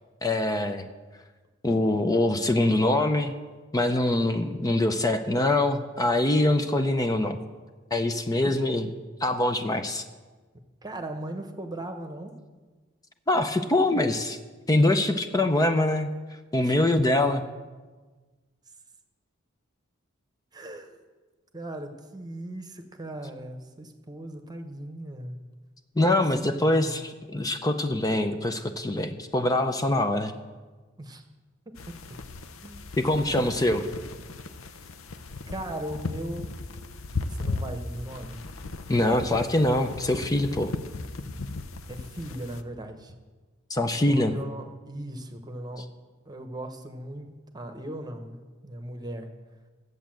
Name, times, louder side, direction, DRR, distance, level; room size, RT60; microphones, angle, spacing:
voice 1, 0.2-0.9 1.6-3.3 3.7-7.4 7.9-8.9 9.2-10.0 13.3-14.4 14.7-16.1 16.5-17.4 26.0-30.3 33.0-33.8 38.9-40.7 43.7-44.3, left 1 dB, 20° left, 8 dB, 0.6 m, -24 dB
voice 2, 10.8-12.3 16.6-16.8 20.5-21.0 21.5-25.4 26.0-27.0 31.0-31.2 31.9-32.0 32.6-32.9 33.3-34.0 35.5-36.5 37.3-38.4 41.9-43.1 43.9-45.8 46.2-49.3, right 1 dB, 20° right, 6 dB, 1.0 m, -38 dB
sound 1, 31.7-42.6, left 3 dB, 80° left, 0.8 m, -37 dB
12.5 x 8.2 x 7.5 m, 1.3 s
head